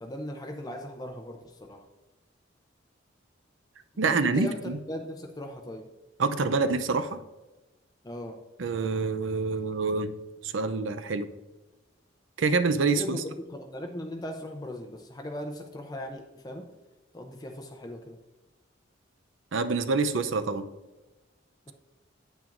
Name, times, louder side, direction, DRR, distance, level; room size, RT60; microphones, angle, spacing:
voice 1, 0.0-1.9 4.0-5.9 8.0-8.4 12.9-16.7 17.1-18.2, left 1 dB, 20° left, 3 dB, 0.6 m, -38 dB
voice 2, 4.0-4.8 6.2-7.2 8.6-10.1 10.4-11.3 12.4-13.2 19.5-20.7, right 4 dB, 75° right, 10 dB, 0.6 m, -26 dB
9.0 x 8.9 x 2.5 m, 1.1 s
head